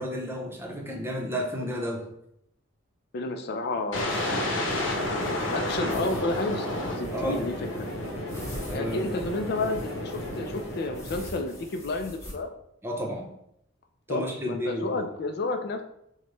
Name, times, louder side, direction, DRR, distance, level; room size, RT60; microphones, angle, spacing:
voice 1, 0.0-2.0 7.1-7.4 8.7-9.0 12.8-13.3 14.1-15.0, equal, 15° right, -1 dB, 0.7 m, -32 dB
voice 2, 3.1-6.7 6.9-7.9 8.7-12.5 14.1-15.8, left 2 dB, 55° left, 6 dB, 0.4 m, -31 dB
sound 1, 3.9-11.8, left 1 dB, 85° left, 1.0 m, -31 dB
sound 2, 3.9-12.3, left 1 dB, 15° left, 1.0 m, -45 dB
6.4 x 2.2 x 3.2 m, 0.76 s
head